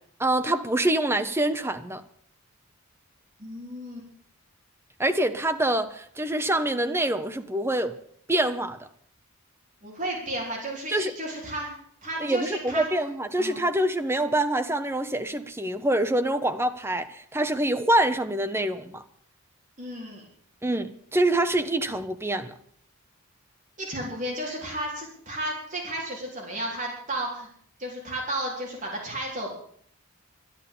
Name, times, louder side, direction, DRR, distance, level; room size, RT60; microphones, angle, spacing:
voice 1, 0.2-2.0 5.0-8.0 8.3-8.9 10.9-11.1 12.2-19.0 20.6-22.5, right 1 dB, 10° right, 0.8 m, -25 dB
voice 2, 3.4-4.0 9.8-11.7 12.0-12.9 13.4-13.7 19.8-20.2 23.8-27.5 27.8-29.5, right 1 dB, 35° right, 4.1 m, -33 dB
13.0 x 10.5 x 8.6 m
head